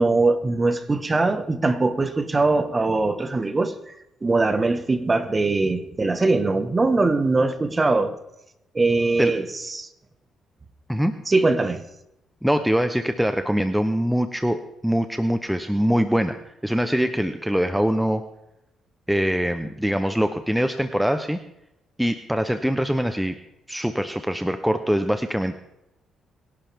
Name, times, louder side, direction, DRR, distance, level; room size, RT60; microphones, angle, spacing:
voice 1, 0.0-3.7 4.2-8.1 8.7-9.9 11.3-11.8, right 3 dB, 25° right, 1.5 m, -21 dB
voice 2, 12.4-18.2 19.1-21.4 22.0-23.3 23.7-25.6, equal, ahead, 0.8 m, -23 dB
22.5 x 11.5 x 3.6 m
cardioid pair, 90°, 0 cm